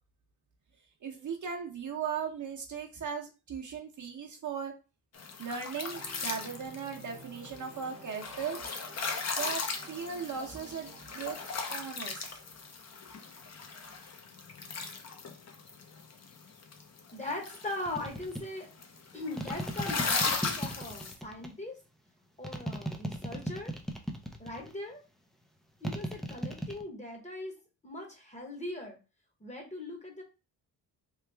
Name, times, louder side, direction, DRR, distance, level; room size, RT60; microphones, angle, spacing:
voice 1, 1.0-4.7 5.4-8.6 9.4-9.6 9.9-12.4, right 6 dB, 45° right, 2 dB, 0.8 m, -38 dB
sound 1, 5.1-21.1, left 4 dB, 35° left, 0.7 m, -37 dB
sound 2, 5.8-12.7, right 4 dB, 15° right, 0.9 m, -54 dB
voice 2, 17.1-18.7 19.1-21.8 22.4-23.7 24.4-25.0 25.8-27.5 27.8-29.0 29.4-30.2, left 2 dB, 15° left, 1 dB, 1.0 m, -40 dB
sound 3, 17.9-18.4 19.4-21.5 22.4-24.7 25.8-26.8, right 1 dB, ahead, 0.4 m, -36 dB
3.1 x 2.3 x 3.3 m, 0.31 s
cardioid pair, 85°, 43 cm